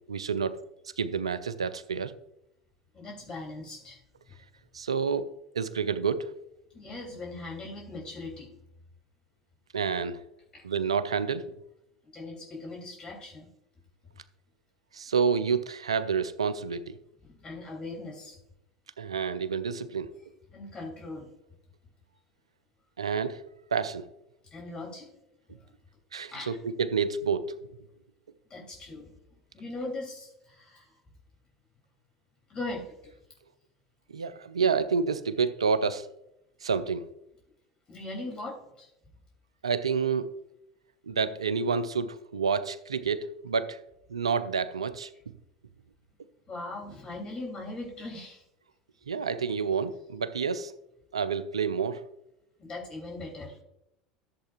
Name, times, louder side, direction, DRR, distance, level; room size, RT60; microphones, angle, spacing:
voice 1, 0.1-0.6 1.0-2.1 4.7-5.3 5.5-6.3 9.7-10.2 10.6-11.5 14.9-17.0 19.0-20.1 23.0-23.4 23.7-24.1 26.1-27.5 34.1-36.1 36.6-37.0 39.6-40.3 41.1-43.8 44.1-45.1 49.1-50.7 51.1-52.1, right 5 dB, 85° right, 14 dB, 0.5 m, -29 dB
voice 2, 2.9-4.0 6.7-8.6 10.5-10.6 12.1-13.5 17.2-18.4 20.5-21.3 24.5-25.1 25.6-25.7 26.3-26.6 28.5-29.1 29.5-30.9 32.5-33.1 37.9-38.9 46.5-48.4 52.6-53.6, left 2 dB, 30° left, -1 dB, 3.2 m, -40 dB
14.0 x 7.5 x 2.5 m, 0.84 s
hypercardioid pair, 75°, 3 cm